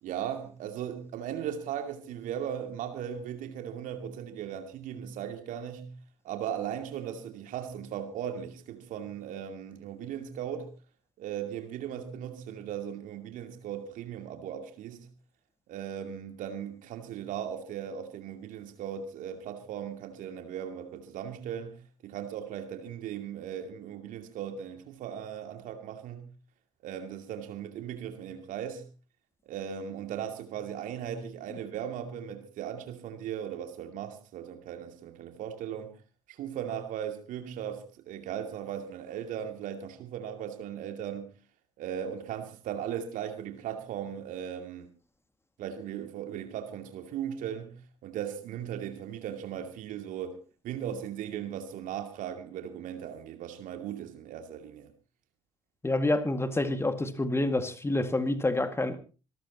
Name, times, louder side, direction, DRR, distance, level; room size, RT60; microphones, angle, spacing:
voice 1, 0.0-5.9 6.2-10.7 11.2-15.1 15.7-26.3 26.8-28.9 29.5-35.9 36.3-41.3 41.8-44.9 45.6-50.4 50.6-54.9, right 9 dB, 55° right, 2.6 m, -38 dB
voice 2, 55.8-59.0, left 2 dB, 15° left, 2.0 m, -28 dB
26.5 x 13.5 x 2.9 m
figure-of-eight pair, 45°, 16 cm